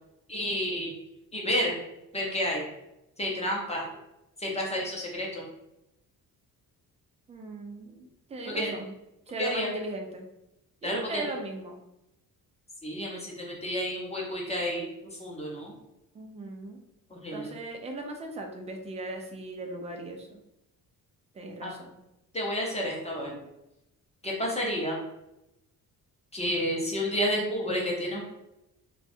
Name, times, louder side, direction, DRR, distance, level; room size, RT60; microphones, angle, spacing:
voice 1, 0.3-0.9 1.3-1.7 2.1-2.6 3.2-3.8 4.4-5.4 8.5-8.8 9.4-9.7 10.8-11.2 12.8-14.8 15.2-15.7 17.1-17.5 21.6-21.7 22.3-23.3 24.2-25.0 26.3-28.2, equal, 15° left, -2 dB, 0.6 m, -30 dB
voice 2, 7.3-8.9 9.3-10.3 10.8-11.8 16.1-16.8 17.3-20.4 21.3-22.0, right 2 dB, 20° right, 3 dB, 0.3 m, -38 dB
2.6 x 2.3 x 4.1 m, 0.89 s
cardioid pair, 155°, 37 cm